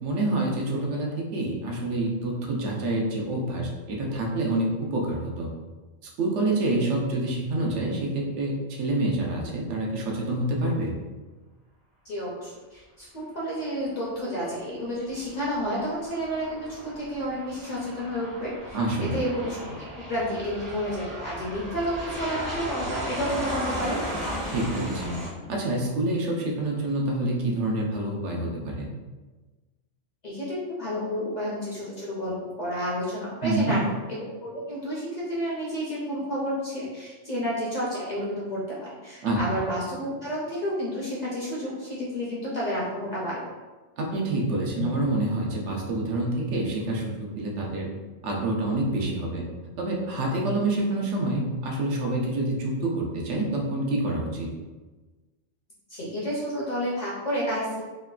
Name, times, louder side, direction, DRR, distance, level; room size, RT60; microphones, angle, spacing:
voice 1, 0.0-5.5 6.2-10.9 18.7-19.2 24.5-25.2 25.5-28.9 33.4-33.8 39.2-39.4 44.0-47.9 48.2-49.4 49.8-54.5, right 2 dB, 80° right, -1 dB, 0.9 m, -27 dB
voice 2, 12.0-24.0 30.2-33.8 34.1-43.4 55.9-57.8, equal, 55° left, -6 dB, 0.5 m, -31 dB
Aircraft, 15.1-25.3, equal, 35° right, 0.5 m, -35 dB
3.1 x 2.1 x 2.3 m, 1.3 s
omnidirectional pair, 1.2 m